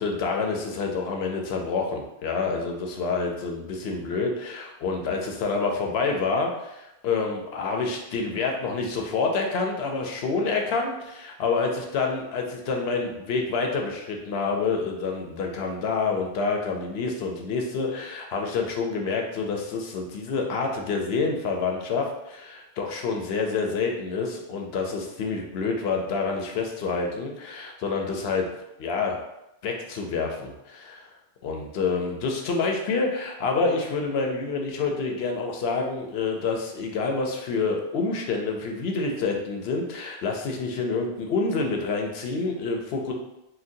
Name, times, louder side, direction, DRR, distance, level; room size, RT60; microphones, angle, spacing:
voice 1, 0.0-28.5 28.8-29.2 29.6-31.1 31.4-43.1, left 4 dB, 70° left, 1 dB, 0.8 m, -27 dB
3.9 x 2.2 x 2.6 m, 0.89 s
omnidirectional pair, 1.1 m